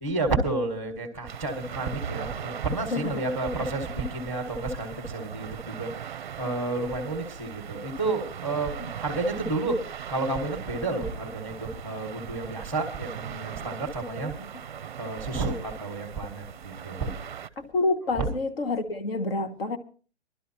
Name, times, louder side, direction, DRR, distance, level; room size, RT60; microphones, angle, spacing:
voice 1, 0.0-9.8 10.1-14.3 15.0-17.1 18.2-18.3, right 2 dB, 5° left, 1.3 m, -31 dB
sound 1, 1.3-17.5, right 8 dB, 45° right, 0.5 m, -39 dB
voice 2, 2.9-3.2 17.6-19.8, left 3 dB, 55° left, 1.5 m, -28 dB
23.5 x 12.0 x 2.8 m
hypercardioid pair, 165°, 34 cm